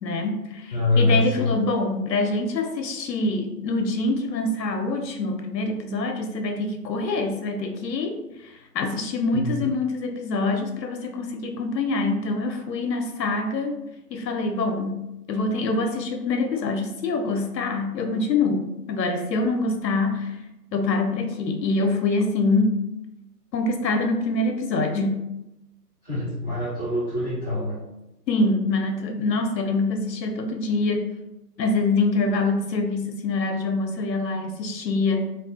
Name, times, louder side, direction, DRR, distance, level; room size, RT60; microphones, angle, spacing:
voice 1, 0.0-13.8 14.1-20.4 20.7-22.8 23.5-25.3 28.3-31.1 31.6-35.4, left 3 dB, 85° left, 4 dB, 0.6 m, -25 dB
voice 2, 0.7-1.5 9.3-9.5 26.0-27.8, left 2 dB, 15° right, -16 dB, 1.2 m, -24 dB
2.3 x 2.3 x 2.4 m, 0.94 s
figure-of-eight pair, 150°, 49 cm